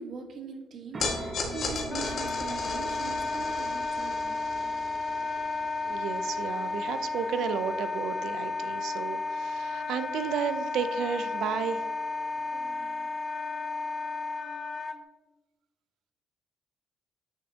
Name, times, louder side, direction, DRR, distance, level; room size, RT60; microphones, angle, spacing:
voice 1, 0.0-4.4 12.3-13.1, right 5 dB, 60° right, 3 dB, 1.4 m, -42 dB
sound 1, 0.9-12.7, right 4 dB, 35° right, 1.0 m, -50 dB
sound 2, 1.0-7.4, left 3 dB, 60° left, 1.8 m, -37 dB
Wind instrument woodwind instrument, 1.9-15.0, left 3 dB, 35° left, 0.6 m, -33 dB
voice 2, 5.8-11.9, right 7 dB, 80° right, 11 dB, 0.5 m, -33 dB
8.8 x 6.3 x 2.9 m, 1.1 s
cardioid pair, 90°, 0 cm